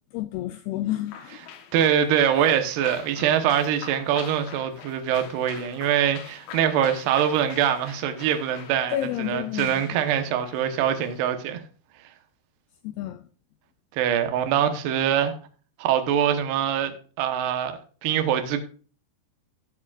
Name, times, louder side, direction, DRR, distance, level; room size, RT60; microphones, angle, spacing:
voice 1, 0.1-1.5 2.3-2.6 8.9-10.0 12.8-13.3, left 14 dB, 85° left, 2.2 m, -31 dB
sound 1, 1.1-11.3, left 7 dB, 65° left, 2.7 m, -44 dB
voice 2, 1.7-9.0 9.3-11.6 14.0-15.3 15.8-16.9 17.2-18.6, right 9 dB, 75° right, 3.0 m, -23 dB
17.5 x 7.5 x 2.4 m
omnidirectional pair, 4.9 m